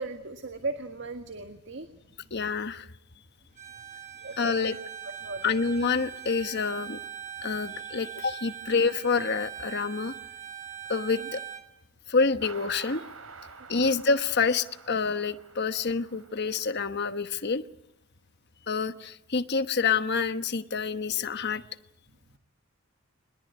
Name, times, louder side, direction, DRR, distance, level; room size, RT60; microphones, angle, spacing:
voice 1, 0.0-1.9 4.2-4.9 5.2-5.6 11.1-11.3 13.8-14.0, right 3 dB, 60° right, 7 dB, 1.7 m, -37 dB
voice 2, 2.3-2.9 4.4-4.8 5.4-7.0 7.4-10.1 10.9-11.4 12.1-13.0 13.7-17.6 18.7-21.6, left 4 dB, 50° left, 11 dB, 1.1 m, -27 dB
Bowed string instrument, 3.6-11.7, right 10 dB, 35° right, 2.6 m, -41 dB
sound 1, 12.4-17.2, right 4 dB, 75° right, 3.9 m, -48 dB
23.0 x 21.0 x 9.5 m, 0.81 s
head